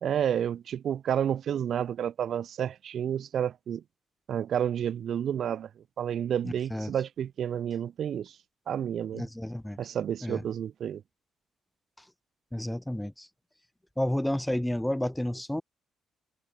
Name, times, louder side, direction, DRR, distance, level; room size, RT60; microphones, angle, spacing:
voice 1, 0.0-3.8 4.3-5.7 6.0-8.4 8.7-9.3 9.8-11.0, right 9 dB, 65° right, 1.0 m, -30 dB
voice 2, 6.4-6.9 9.1-9.8 10.2-10.4 12.5-13.3 14.0-15.6, left 1 dB, 5° left, 0.7 m, -31 dB
cardioid pair, 90°, 0 cm